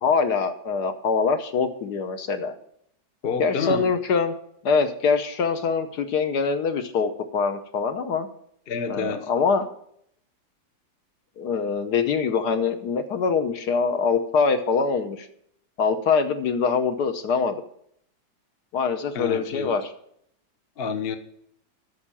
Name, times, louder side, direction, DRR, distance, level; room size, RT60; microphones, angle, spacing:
voice 1, 0.0-2.5 3.4-4.3 4.6-8.3 8.9-9.7 11.4-15.3 15.8-17.6 18.7-19.8, left 5 dB, 65° left, 1.4 m, -24 dB
voice 2, 3.2-3.9 8.7-9.3 19.1-19.8 20.8-21.2, left 6 dB, 45° left, 0.8 m, -28 dB
9.4 x 6.4 x 8.7 m
omnidirectional pair, 2.0 m